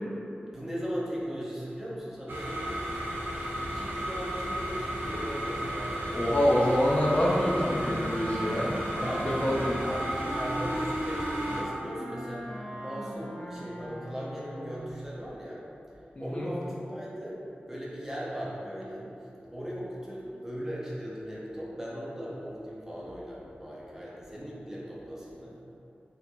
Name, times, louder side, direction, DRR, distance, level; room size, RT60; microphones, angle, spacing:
voice 1, 0.5-2.9 3.6-6.0 9.0-10.0 10.3-15.6 16.2-17.4 17.7-19.1 19.5-25.6, equal, 10° right, -6 dB, 0.7 m, -38 dB
sound 1, 2.3-11.6, equal, 90° right, 0.5 m, -34 dB
voice 2, 6.1-8.8 9.2-9.8 16.2-16.5, equal, 40° left, -5 dB, 0.5 m, -26 dB
Wind instrument woodwind instrument, 7.5-14.9, equal, 80° left, 1.4 m, -38 dB
4.4 x 2.7 x 2.2 m, 2.7 s
wide cardioid pair, 90°, 4 cm